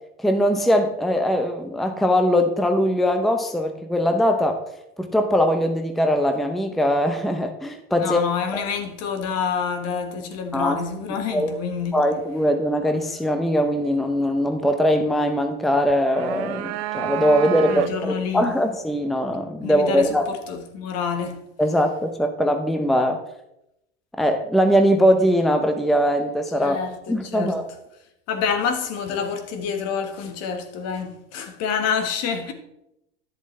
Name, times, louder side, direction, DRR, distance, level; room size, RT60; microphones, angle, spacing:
voice 1, 0.2-4.6 5.0-8.2 8.5-8.6 10.5-10.8 11.3-11.5 11.9-20.3 21.6-23.2 24.2-26.8 27.1-27.7, equal, ahead, 0.7 m, -21 dB
voice 2, 8.0-12.0 17.7-18.5 19.6-21.4 26.6-27.6 28.3-32.5, left 6 dB, 50° left, 1.5 m, -27 dB
sound 1, 15.9-18.2, right 15 dB, 55° right, 0.6 m, -30 dB
10.5 x 7.3 x 3.2 m
hypercardioid pair, 95°, 31 cm